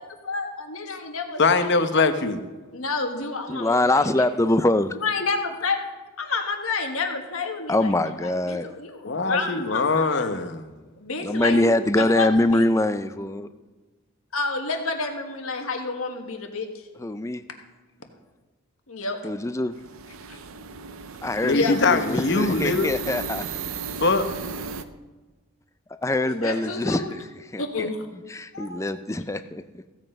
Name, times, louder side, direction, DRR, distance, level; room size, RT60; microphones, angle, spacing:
voice 1, 0.2-1.8 2.7-4.3 4.9-5.9 6.2-10.3 11.0-12.7 14.3-16.8 18.9-19.2 20.3-20.4 21.5-21.7 26.2-27.1 27.6-28.1 28.5-28.9, left 3 dB, 70° left, 4 dB, 1.6 m, -30 dB
voice 2, 1.4-2.4 9.0-10.7 21.4-22.9 24.0-24.3, left 3 dB, 50° left, 9 dB, 0.9 m, -22 dB
voice 3, 3.5-5.0 7.7-8.7 11.2-13.5 17.0-17.4 19.2-19.8 21.2-23.4 26.0-27.2 27.5-27.9 28.3-29.8, left 2 dB, 15° left, 11 dB, 0.4 m, -23 dB
sound 1, 19.7-24.8, right 5 dB, 70° right, 0.6 m, -35 dB
15.5 x 7.7 x 5.3 m, 1.3 s
head